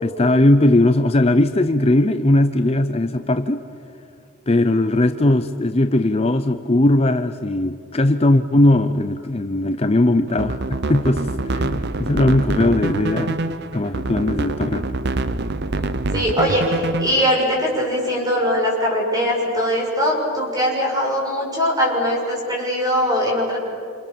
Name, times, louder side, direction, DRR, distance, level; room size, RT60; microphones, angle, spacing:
voice 1, 0.0-3.6 4.5-14.8, left 1 dB, 30° left, 9 dB, 0.7 m, -18 dB
sound 1, 10.3-17.4, right 2 dB, 55° right, 0.8 m, -25 dB
voice 2, 16.1-23.6, equal, 20° right, -2 dB, 7.0 m, -21 dB
28.5 x 28.0 x 7.1 m, 2.6 s
head